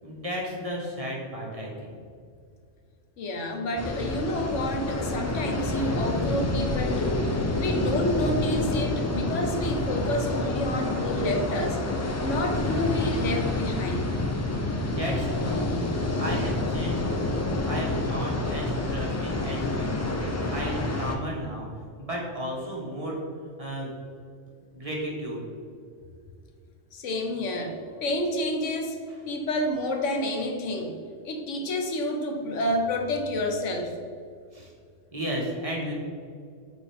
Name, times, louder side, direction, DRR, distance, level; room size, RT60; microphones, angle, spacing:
voice 1, 0.0-1.9 14.8-15.8 16.2-17.4 17.6-20.2 20.5-21.7 22.0-23.2 23.6-23.9 24.7-25.4 34.5-34.7 35.1-35.9, equal, 30° right, -3 dB, 1.5 m, -33 dB
voice 2, 3.2-7.2 7.6-14.1 26.9-29.0 29.3-30.9 31.2-33.9, left 1 dB, 80° left, 3 dB, 1.2 m, -29 dB
sound 1, 3.8-21.2, left 2 dB, 25° left, 0.3 m, -28 dB
8.8 x 4.4 x 3.6 m, 2.2 s
omnidirectional pair, 1.3 m